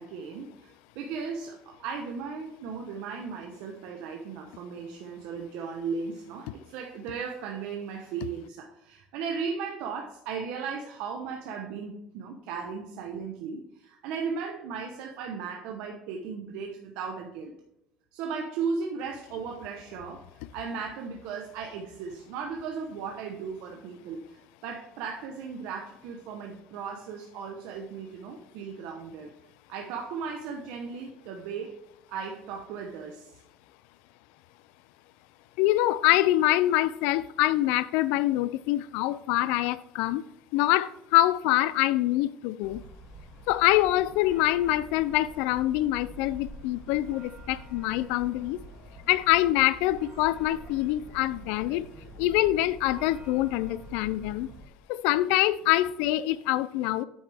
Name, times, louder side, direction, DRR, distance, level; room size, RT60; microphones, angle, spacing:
voice 1, 0.0-17.5 18.1-20.2 20.5-29.3 29.7-31.8 32.1-33.4, right 5 dB, 70° right, 0.9 m, -36 dB
voice 2, 35.6-40.2 40.5-42.8 43.5-48.6 49.1-51.8 52.2-54.5 54.9-57.0, left 15 dB, 80° left, 0.3 m, -25 dB
sound 1, 42.6-54.6, right 1 dB, 25° right, 2.4 m, -47 dB
8.8 x 6.3 x 3.5 m
cardioid pair, 175°, 2 cm